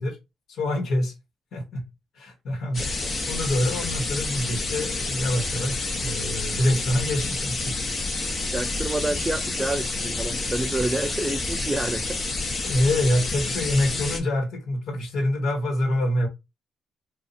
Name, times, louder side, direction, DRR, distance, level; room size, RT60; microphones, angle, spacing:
voice 1, 0.5-1.1 1.5-1.8 2.2-2.8 3.3-7.8 12.6-16.3, left 1 dB, 70° left, 1.3 m, -25 dB
sound 1, 2.7-14.2, left 3 dB, 40° left, 0.9 m, -29 dB
voice 2, 8.4-12.2 12.5-12.8, right 2 dB, 20° right, 0.4 m, -28 dB
2.8 x 2.4 x 4.0 m
cardioid pair, 90°, 0 cm